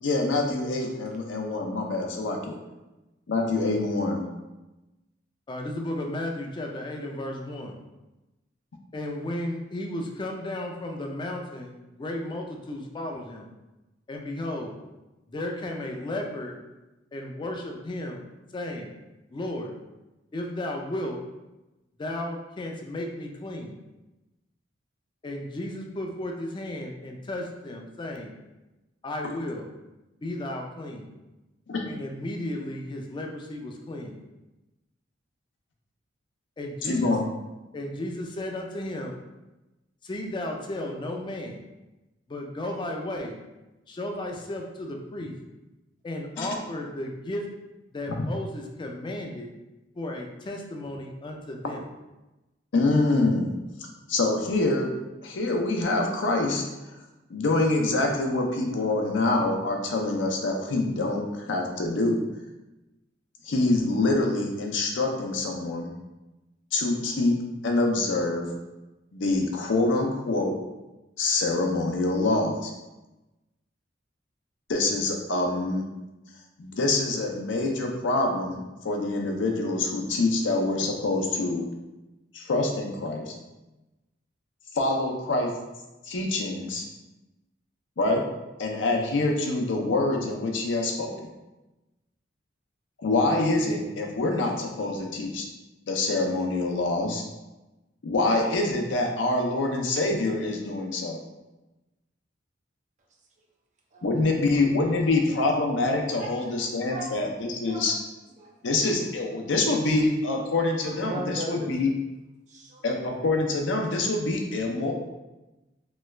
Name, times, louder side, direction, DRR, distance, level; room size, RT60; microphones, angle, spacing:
voice 1, 0.0-2.6 3.3-4.2 31.7-31.8 36.8-37.2 46.4-46.5 48.1-48.3 52.7-53.5 54.1-54.9 55.2-56.7 57.3-62.2 63.4-65.9 66.7-67.4 67.6-68.5 69.1-70.6 71.2-72.7 74.7-75.8 76.6-81.7 82.3-83.3 84.7-85.5 86.0-86.9 88.0-88.2 88.6-91.3 93.0-95.5 95.9-97.2 98.0-101.2 104.0-107.9 108.6-111.9 112.8-114.9, left 2 dB, 80° left, 2 dB, 0.5 m, -25 dB
voice 2, 5.5-7.8 8.9-11.7 12.0-13.5 14.1-14.7 15.3-16.6 17.1-18.2 18.5-18.9 19.3-19.7 20.3-21.2 22.0-23.7 25.2-28.3 29.0-29.7 30.2-31.1 31.8-34.2 36.6-37.3 37.7-39.2 40.0-41.6 42.3-43.4 43.9-45.4 46.0-47.5 47.9-49.5 50.0-51.9, left 1 dB, 25° left, 2 dB, 0.4 m, -34 dB
voice 3, 107.7-108.0 108.4-108.8 110.8-111.7 112.5-112.8, right 1 dB, 40° right, -1 dB, 0.6 m, -37 dB
3.0 x 2.3 x 3.2 m, 1.0 s
head